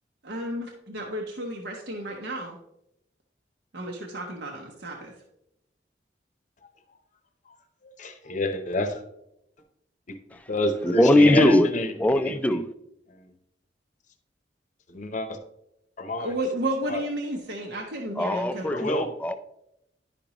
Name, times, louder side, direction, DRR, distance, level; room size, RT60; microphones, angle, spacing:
voice 1, 0.2-2.6 3.7-5.1 16.2-18.6, right 1 dB, 65° right, 0.9 m, -32 dB
voice 2, 7.8-9.0 10.1-10.2 10.5-11.9 12.2-12.6 13.1-13.3 14.9-15.4 16.0-16.3 16.9-17.0 18.6-19.1, left 1 dB, 45° left, 0.8 m, -29 dB
voice 3, 10.8-11.7 12.0-12.7 18.2-19.4, left 1 dB, 10° left, 0.4 m, -20 dB
11.0 x 5.2 x 3.0 m
head